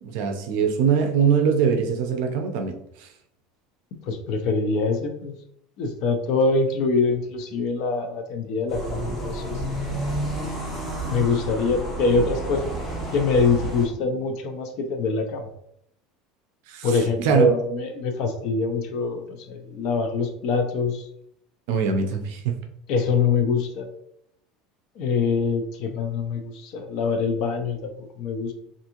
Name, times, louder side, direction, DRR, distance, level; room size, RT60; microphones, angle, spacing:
voice 1, 0.0-3.1 16.7-17.5 21.7-22.5, right 6 dB, 60° right, 5 dB, 0.5 m, -23 dB
voice 2, 4.1-5.3 5.8-9.6 11.1-12.7 13.1-15.5 16.8-21.1 22.9-23.9 25.0-28.5, left 4 dB, 45° left, 5 dB, 0.4 m, -24 dB
sound 1, 8.7-13.9, right 1 dB, ahead, 0.7 m, -30 dB
3.5 x 2.5 x 2.8 m, 0.75 s
cardioid pair, 180°, 0 cm